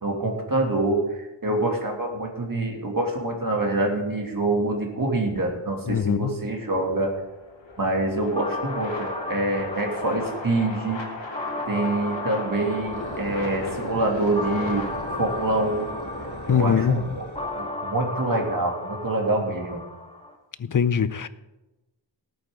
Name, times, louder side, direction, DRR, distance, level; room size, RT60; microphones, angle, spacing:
voice 1, 0.0-7.1 7.8-11.0 11.7-14.9 15.2-15.9 16.5-19.8, right 2 dB, 45° right, 2.6 m, -26 dB
voice 2, 5.9-6.4 16.5-17.0 20.6-21.3, left 7 dB, 45° left, 0.7 m, -22 dB
sound 1, 6.5-16.9, left 2 dB, 70° left, 3.3 m, -36 dB
sound 2, 8.4-20.4, left 2 dB, 15° left, 1.8 m, -35 dB
sound 3, 12.7-17.7, right 2 dB, 90° right, 4.2 m, -42 dB
18.5 x 8.8 x 3.8 m
cardioid pair, 50°, 45 cm